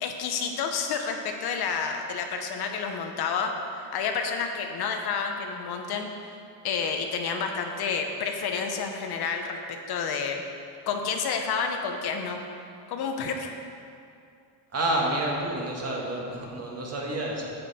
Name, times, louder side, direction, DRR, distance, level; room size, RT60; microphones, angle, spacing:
voice 1, 0.0-3.5 3.9-6.1 6.6-10.4 10.9-12.4 12.9-13.5, left 5 dB, 55° left, 4 dB, 0.9 m, -29 dB
voice 2, 14.7-17.5, right 1 dB, 35° right, -2 dB, 1.7 m, -29 dB
9.6 x 7.4 x 4.2 m, 2.4 s
cardioid pair, 130°, 45 cm